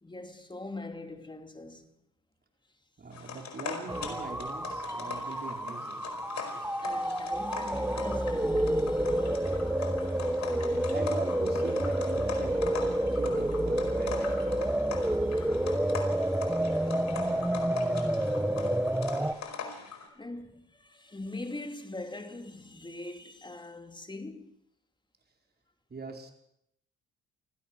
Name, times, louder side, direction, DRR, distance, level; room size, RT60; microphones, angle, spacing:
voice 1, 0.0-1.9 3.2-3.3 5.1-5.3 6.4-9.5 10.2-10.4 15.1-15.9 16.9-17.1 17.8-19.1 19.4-24.6, left 2 dB, 15° left, 2.6 m, -44 dB
voice 2, 3.0-6.0 10.9-12.8 13.1-14.6 25.9-26.3, right 4 dB, 35° right, 4.7 m, -42 dB
sound 1, 3.1-20.1, left 6 dB, 65° left, 4.8 m, -42 dB
sound 2, 3.9-19.3, right 1 dB, 5° right, 1.9 m, -29 dB
27.5 x 16.5 x 6.2 m
cardioid pair, 90°, 30 cm